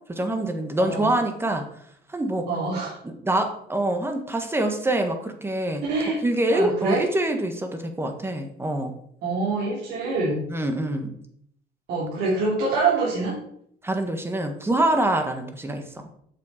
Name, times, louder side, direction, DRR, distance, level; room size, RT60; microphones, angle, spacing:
voice 1, 0.1-1.7 2.1-2.5 3.0-5.8 6.2-8.9 10.5-11.1 13.8-15.8, right 1 dB, 15° right, 6 dB, 1.5 m, -25 dB
voice 2, 0.8-1.1 2.5-3.0 5.8-6.2 6.5-7.0 9.2-10.4 11.9-13.4, right 3 dB, 80° right, -6 dB, 3.1 m, -25 dB
7.7 x 7.0 x 5.0 m, 0.67 s
cardioid pair, 110°, 17 cm